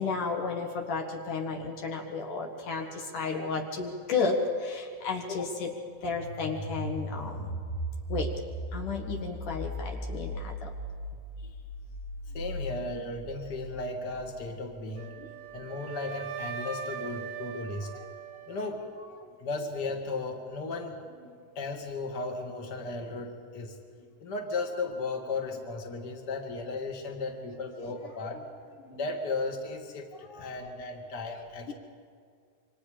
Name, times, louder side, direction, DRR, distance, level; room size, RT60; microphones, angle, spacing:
voice 1, 0.0-5.7 6.0-7.6 8.1-8.3 8.7-10.7 15.2-15.3 19.2-19.3 21.2-21.3 27.8-27.9 28.8-29.0 30.2-30.7 31.7-31.8, left 4 dB, 65° left, 1 dB, 3.0 m, -33 dB
sound 1, 6.1-14.8, equal, 90° left, 5.3 m, -38 dB
voice 2, 12.3-15.2 15.5-17.9 18.5-18.9 19.4-21.0 21.6-23.8 24.2-28.5 28.9-31.7, left 3 dB, 35° left, 3 dB, 2.1 m, -35 dB
Wind instrument woodwind instrument, 15.0-19.1, right 6 dB, 85° right, 3.1 m, -40 dB
28.0 x 25.5 x 5.1 m, 2.2 s
omnidirectional pair, 4.3 m